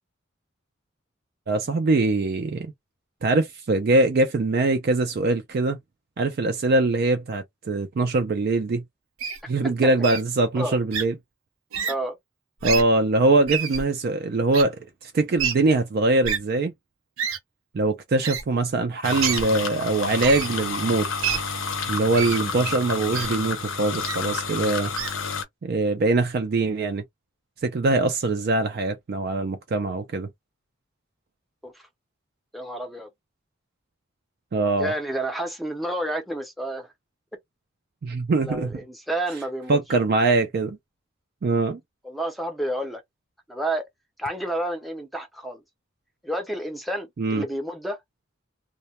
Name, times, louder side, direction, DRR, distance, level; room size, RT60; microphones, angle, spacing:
voice 1, 1.5-2.7 3.2-5.8 6.2-8.8 9.5-11.1 12.6-16.7 17.7-21.3 21.9-24.9 25.6-27.0 27.6-30.3 34.5-34.9 38.0-38.7 39.7-40.8 41.4-41.8 47.2-47.4, right 2 dB, 50° right, 0.4 m, -23 dB
Wild animals, 9.2-9.4 10.0-10.2 10.9-11.0 11.7-11.9 12.6-12.8 13.5-13.8 14.5-14.6 15.4-15.5 16.2-16.4 17.2-17.4 18.2-18.4 19.2-19.4 20.2-20.5 21.2-21.4 22.2-22.4 23.1-23.3 24.0-24.2 25.0-25.1, right 7 dB, 85° right, 0.7 m, -27 dB
sound 1, 19.0-25.4, left 5 dB, 75° left, 0.7 m, -30 dB
voice 2, 32.5-33.1 34.8-36.9 38.4-39.8 42.0-43.0 43.5-43.9 44.2-45.6 46.2-48.0, right 1 dB, ahead, 0.6 m, -30 dB
2.2 x 2.1 x 2.8 m
head